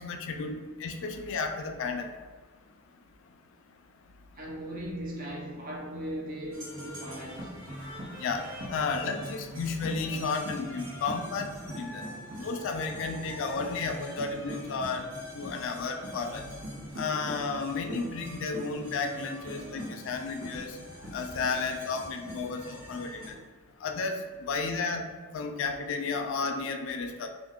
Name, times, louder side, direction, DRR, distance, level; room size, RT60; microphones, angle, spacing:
voice 1, 0.0-2.1 8.2-12.0 12.4-15.1 15.3-16.4 17.0-20.8 21.1-23.2 23.8-25.0 25.3-27.3, left 4 dB, 65° left, 5 dB, 0.3 m, -33 dB
voice 2, 4.3-7.6 11.9-12.1, equal, 45° right, -2 dB, 0.6 m, -38 dB
sound 1, 6.5-23.3, equal, 80° right, 1.0 m, -42 dB
2.5 x 2.3 x 3.6 m, 1.4 s
head